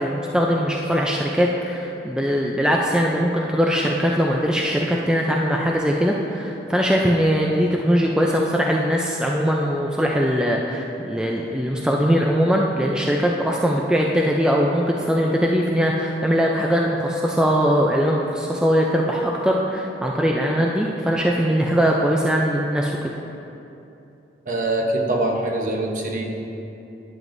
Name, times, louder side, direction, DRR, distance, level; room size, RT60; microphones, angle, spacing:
voice 1, 0.0-22.9, equal, 5° right, -1 dB, 0.4 m, -21 dB
voice 2, 24.5-26.2, right 2 dB, 45° right, 0 dB, 0.9 m, -23 dB
11.0 x 9.1 x 2.6 m, 2.8 s
head